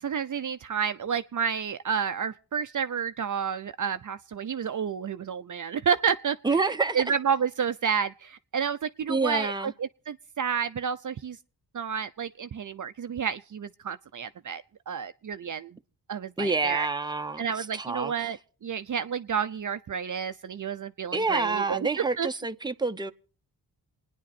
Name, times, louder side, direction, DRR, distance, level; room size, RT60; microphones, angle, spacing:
voice 1, 0.0-6.4 6.9-11.4 11.7-15.8 16.1-16.9 17.4-22.3, right 7 dB, 50° right, 0.7 m, -30 dB
voice 2, 6.4-7.0 9.1-9.7 16.4-18.3 21.1-23.1, right 3 dB, 10° right, 0.8 m, -28 dB
27.5 x 9.9 x 4.2 m
cardioid pair, 55°, 40 cm